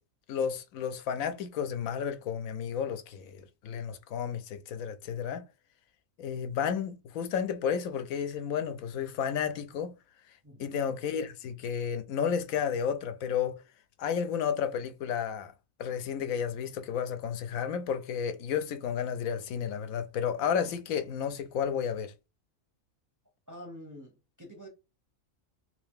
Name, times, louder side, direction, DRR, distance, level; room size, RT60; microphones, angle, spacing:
voice 1, 0.3-5.5 6.2-10.0 10.6-13.6 14.0-15.5 15.8-22.1, left 7 dB, 90° left, 1.0 m, -32 dB
voice 2, 10.4-10.8 23.5-24.7, equal, 20° right, 0.5 m, -47 dB
2.8 x 2.7 x 3.5 m
omnidirectional pair, 1.4 m